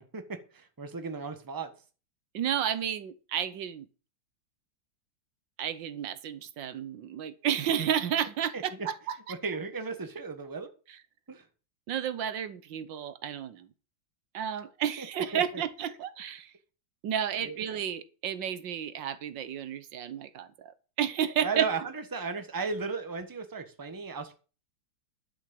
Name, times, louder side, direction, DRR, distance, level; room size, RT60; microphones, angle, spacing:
voice 1, 0.0-1.7 8.5-8.9 9.3-10.7 11.3-11.5 15.0-15.1 15.3-15.6 17.4-17.6 21.4-24.3, right 4 dB, 10° right, 8 dB, 1.2 m, -35 dB
voice 2, 2.3-3.8 5.6-9.2 11.9-13.7 14.3-16.5 17.0-21.7, right 9 dB, 75° right, 14 dB, 1.6 m, -32 dB
12.0 x 6.3 x 7.7 m, 0.36 s
omnidirectional pair, 2.1 m